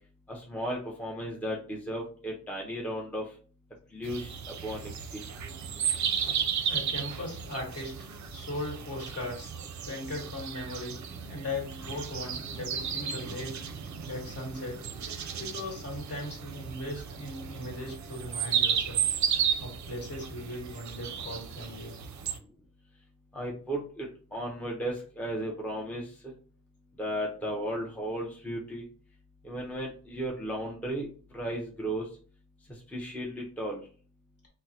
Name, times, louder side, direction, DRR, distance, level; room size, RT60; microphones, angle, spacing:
voice 1, 0.3-3.3 3.9-4.4 4.6-5.2 23.3-26.1 27.0-28.8 29.4-31.1 31.3-32.1 32.9-33.8, right 1 dB, 5° left, -2 dB, 0.5 m, -35 dB
sound 1, 4.0-22.4, right 8 dB, 55° right, 0.5 m, -34 dB
voice 2, 6.7-8.0 8.3-9.5 9.8-13.6 14.1-14.8 15.3-19.0 19.6-21.9, left 1 dB, 45° left, -1 dB, 1.4 m, -38 dB
3.6 x 2.0 x 2.8 m, 0.41 s
wide cardioid pair, 100°, 34 cm